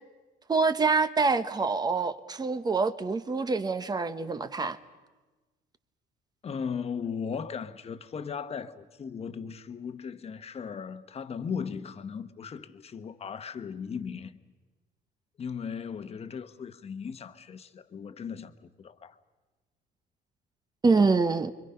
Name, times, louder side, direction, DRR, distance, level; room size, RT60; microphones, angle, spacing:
voice 1, 0.5-4.8 20.8-21.5, right 4 dB, 25° right, 1.2 m, -25 dB
voice 2, 6.4-14.4 15.4-19.2, left 6 dB, 35° left, 1.2 m, -37 dB
30.0 x 24.0 x 5.8 m
cardioid pair, 110°, 17 cm